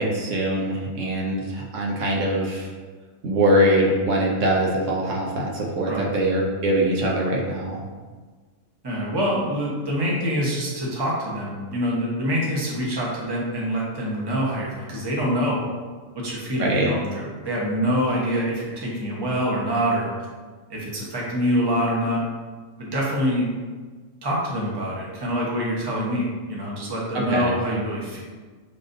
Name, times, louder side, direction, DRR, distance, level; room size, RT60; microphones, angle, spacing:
voice 1, 0.0-2.7 3.2-7.8 16.6-17.0 27.3-27.5, right 1 dB, 75° right, -2 dB, 1.1 m, -22 dB
voice 2, 8.8-15.6 16.1-20.1 20.7-22.2 22.8-23.4 24.2-28.2, equal, 20° right, -5 dB, 0.8 m, -25 dB
6.9 x 2.6 x 2.6 m, 1.4 s
omnidirectional pair, 1.3 m